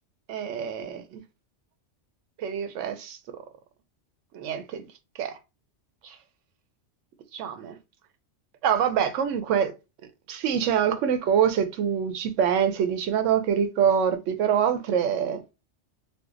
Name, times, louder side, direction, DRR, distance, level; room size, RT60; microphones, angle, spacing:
voice 1, 0.3-1.2 2.4-3.2 4.3-4.8 5.2-5.4 6.0-6.1 7.3-7.8 8.6-9.7 10.3-15.4, right 8 dB, 90° right, 0.9 m, -25 dB
2.6 x 2.0 x 3.7 m
omnidirectional pair, 1.2 m